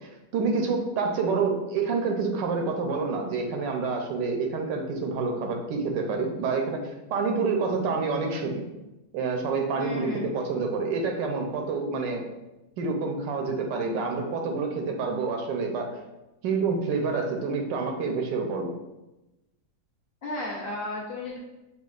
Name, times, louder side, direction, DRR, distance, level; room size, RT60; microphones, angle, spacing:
voice 1, 0.0-6.8 7.1-8.6 9.1-12.3 12.8-15.9 16.4-18.7, right 4 dB, 90° right, 3 dB, 1.3 m, -28 dB
voice 2, 9.8-10.3 20.2-21.4, left 2 dB, 65° left, -3 dB, 0.9 m, -33 dB
5.9 x 2.3 x 2.4 m, 0.96 s
omnidirectional pair, 1.9 m